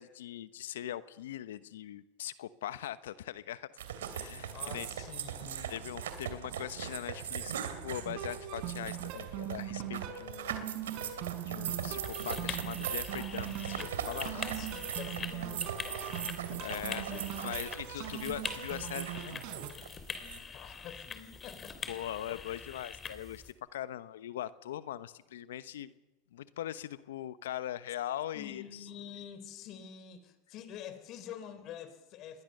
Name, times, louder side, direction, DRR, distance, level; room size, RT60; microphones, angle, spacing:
voice 1, 0.0-3.7 4.1-4.9 5.7-7.5 7.8-10.6 10.8-14.3 16.6-17.0 17.4-19.4 21.9-25.9 26.3-28.6, left 12 dB, 80° left, 15 dB, 0.9 m, -41 dB
sound 1, 3.8-20.4, right 9 dB, 85° right, 2.6 m, -40 dB
voice 2, 4.5-5.7 14.3-16.2 16.5-17.3 17.9-18.1 20.2-22.5 28.3-32.4, left 9 dB, 50° left, 11 dB, 3.5 m, -47 dB
sound 2, 8.0-19.7, right 11 dB, 55° right, 4.3 m, -41 dB
sound 3, 11.7-23.5, left 5 dB, 25° left, 3.0 m, -44 dB
27.5 x 21.0 x 6.7 m, 1.1 s
hypercardioid pair, 100°, 0 cm